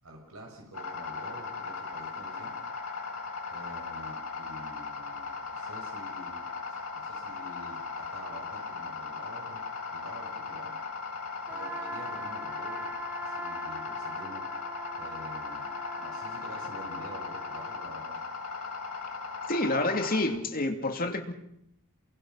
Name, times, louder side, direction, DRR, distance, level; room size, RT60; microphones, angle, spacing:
voice 1, 0.0-2.7 3.5-9.6 9.9-10.8 11.5-12.9 13.2-14.5 15.0-18.2, right 1 dB, 75° right, 6.1 m, -48 dB
Timer Switch Clock, 0.7-20.2, left 4 dB, 80° left, 6.4 m, -38 dB
Trumpet, 11.5-17.9, right 2 dB, 10° right, 1.2 m, -42 dB
voice 2, 19.5-21.3, left 2 dB, 40° left, 2.7 m, -28 dB
28.0 x 23.0 x 5.8 m
head